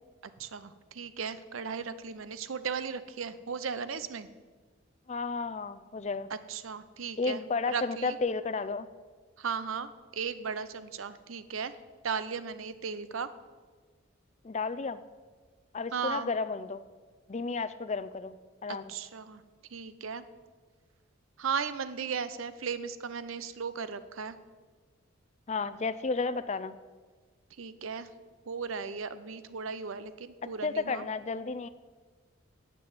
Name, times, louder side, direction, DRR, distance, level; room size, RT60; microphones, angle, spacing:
voice 1, 0.2-4.3 6.3-7.4 7.7-8.2 9.4-11.7 12.0-13.3 15.9-16.3 18.7-19.4 19.7-20.2 21.4-24.4 27.6-28.1 28.5-31.1, right 6 dB, 80° right, 13 dB, 0.7 m, -36 dB
voice 2, 5.1-6.3 7.2-8.9 14.4-15.0 15.7-16.8 17.3-18.9 25.5-26.8 30.6-31.7, left 4 dB, 35° left, 13 dB, 0.4 m, -32 dB
9.4 x 7.7 x 8.8 m, 1.4 s
head